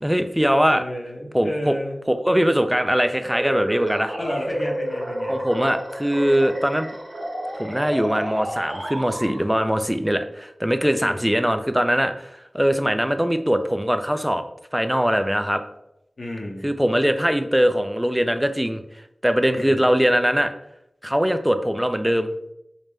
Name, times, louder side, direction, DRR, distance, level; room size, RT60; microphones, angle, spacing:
voice 1, 0.0-0.8 1.3-1.8 2.1-4.1 5.3-6.9 7.6-14.4 14.7-15.6 16.6-18.8 19.2-20.5 21.0-22.3, equal, 5° right, 8 dB, 0.3 m, -21 dB
voice 2, 0.7-2.0 4.2-5.5 11.0-11.4 16.2-16.6 19.5-19.8, left 1 dB, 75° left, -1 dB, 0.8 m, -32 dB
sound 1, 3.2-9.7, equal, 75° right, 1.3 m, -30 dB
5.0 x 2.1 x 3.2 m, 0.82 s
wide cardioid pair, 50°, 0 cm